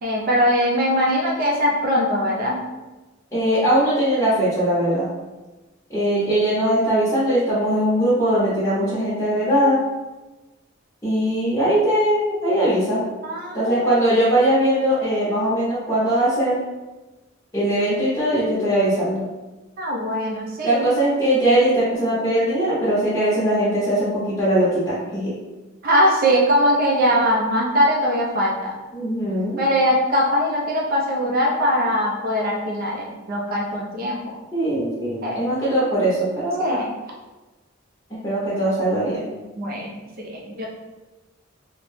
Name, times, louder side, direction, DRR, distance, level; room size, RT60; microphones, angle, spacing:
voice 1, 0.0-2.6 13.2-13.9 19.8-20.9 25.8-28.7 29.6-34.4 35.2-35.4 36.6-36.9 39.6-40.7, equal, 45° right, -2 dB, 0.4 m, -21 dB
voice 2, 3.3-5.1 5.9-9.8 11.0-13.0 13.5-16.6 17.5-19.3 20.6-25.3 28.9-29.6 34.5-36.8 38.1-39.3, right 1 dB, 15° left, -9 dB, 0.7 m, -20 dB
2.9 x 2.1 x 3.1 m, 1.2 s
head